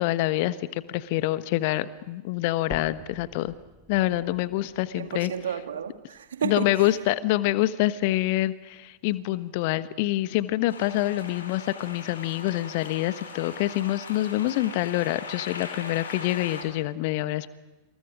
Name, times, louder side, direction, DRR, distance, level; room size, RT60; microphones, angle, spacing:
voice 1, 0.0-3.5 3.9-5.3 6.4-17.5, left 16 dB, 50° left, 1.2 m, -26 dB
sound 1, 2.7-6.7 7.3-7.4 7.9-8.0 8.4-8.5 9.3-9.4, right 1 dB, ahead, 1.3 m, -48 dB
voice 2, 4.9-7.0, right 8 dB, 65° right, 2.2 m, -32 dB
sound 2, 10.7-16.6, left 4 dB, 70° left, 4.9 m, -40 dB
28.0 x 28.0 x 5.1 m
figure-of-eight pair, 90°, 0 cm